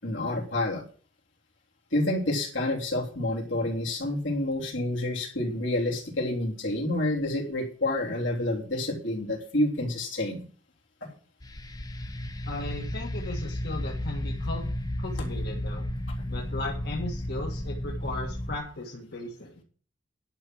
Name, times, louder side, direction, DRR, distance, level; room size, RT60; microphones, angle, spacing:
voice 1, 0.0-0.8 1.9-10.4 15.2-15.3, left 1 dB, 75° left, -1 dB, 3.3 m, -28 dB
sound 1, 11.4-18.6, left 1 dB, 20° left, 0.7 m, -33 dB
voice 2, 12.4-14.6 15.0-15.8 16.3-19.6, left 2 dB, 55° left, -1 dB, 1.8 m, -36 dB
11.0 x 6.0 x 7.9 m, 0.42 s
head